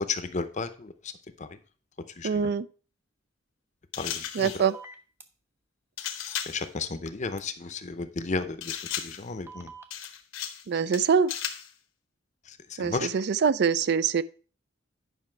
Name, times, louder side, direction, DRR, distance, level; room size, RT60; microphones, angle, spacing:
voice 1, 0.1-0.9 1.4-1.5 2.2-2.4 4.0-4.5 6.5-8.8 9.0-9.7 12.7-13.1, left 4 dB, 35° left, 0.6 m, -33 dB
voice 2, 2.2-2.7 4.3-4.8 10.7-11.3 12.8-14.2, right 6 dB, 55° right, 0.4 m, -24 dB
sound 1, 3.9-4.7 6.0-6.7 8.6-9.3 9.9-10.7 10.9-11.7, left 9 dB, 80° left, 1.0 m, -35 dB
sound 2, 4.6-5.2 7.4-7.5 9.5-10.1, right 3 dB, 10° right, 0.7 m, -44 dB
9.7 x 5.7 x 4.5 m
head